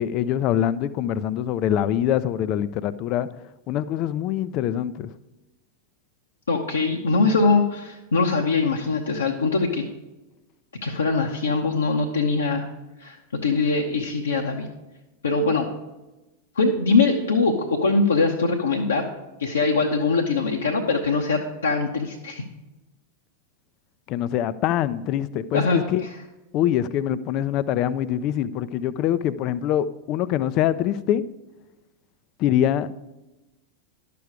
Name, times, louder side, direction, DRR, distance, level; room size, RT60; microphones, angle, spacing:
voice 1, 0.0-3.3 3.7-5.1 24.1-26.0 26.5-31.2 32.4-32.9, left 11 dB, 40° left, 16 dB, 0.4 m, -24 dB
voice 2, 6.5-9.8 10.8-12.7 13.0-14.7 15.2-15.7 16.6-19.1 19.4-22.4 25.5-26.1, left 3 dB, 70° left, 1 dB, 0.9 m, -22 dB
11.5 x 6.9 x 4.8 m, 1.0 s
figure-of-eight pair, 90°, 0 cm